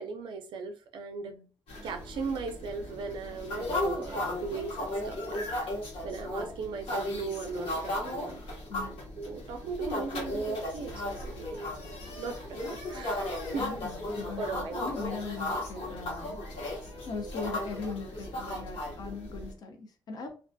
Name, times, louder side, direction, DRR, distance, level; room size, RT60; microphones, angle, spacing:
voice 1, 0.0-1.3 1.8-5.4 6.0-8.4 9.2-10.9 11.2-11.7 12.2-13.7 14.4-14.9, right 4 dB, 65° right, 5 dB, 0.4 m, -38 dB
sound 1, 1.7-19.5, left 1 dB, 90° left, 1.0 m, -36 dB
voice 2, 13.6-16.4 17.1-20.3, left 4 dB, 45° left, 4 dB, 0.5 m, -40 dB
2.3 x 2.2 x 2.5 m, 0.37 s
cardioid pair, 165°, 9 cm